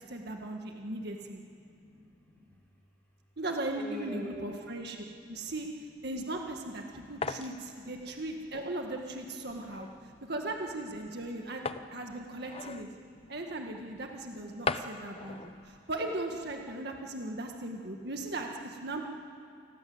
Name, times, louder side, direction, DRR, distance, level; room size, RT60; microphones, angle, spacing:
voice 1, 0.0-1.4 3.4-5.7 6.0-9.9 10.3-11.7 11.9-12.9 13.3-19.0, right 2 dB, 55° right, 2 dB, 1.8 m, -38 dB
voice 2, 1.6-2.5 3.7-4.5 5.0-5.5 6.9-7.0 9.6-10.3 11.5-11.6 12.6-12.7 13.1-13.4 14.6-15.8, left 1 dB, 5° left, -4 dB, 6.0 m, -48 dB
sound 1, 6.3-16.8, left 4 dB, 30° left, 0.8 m, -42 dB
29.0 x 21.0 x 8.0 m, 2.6 s
head